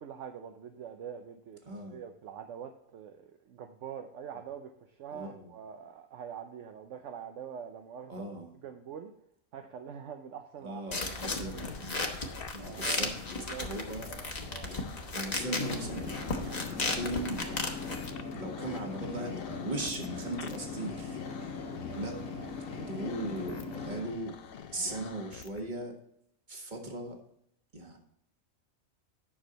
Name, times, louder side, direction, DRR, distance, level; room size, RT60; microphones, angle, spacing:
voice 1, 0.0-8.3 8.5-9.1 9.5-11.0 11.4-11.7 12.6-13.1 13.4-13.7 14.1-14.7 21.4-22.2, right 8 dB, 65° right, 6 dB, 1.0 m, -45 dB
voice 2, 1.7-2.0 5.1-5.5 8.1-8.5 10.6-11.9 12.5-13.1 13.6-14.1 15.1-17.6 18.4-21.2 22.0-22.2 22.7-24.4 24.7-25.9 26.5-27.2 27.7-28.0, right 1 dB, 35° right, 2 dB, 1.6 m, -38 dB
sound 1, 10.9-25.7, left 7 dB, 55° left, 0.7 m, -47 dB
sound 2, 10.9-18.1, left 2 dB, 30° left, 1.1 m, -36 dB
sound 3, 15.1-24.0, left 4 dB, 85° left, 2.1 m, -40 dB
9.8 x 6.2 x 4.0 m, 0.73 s
omnidirectional pair, 1.4 m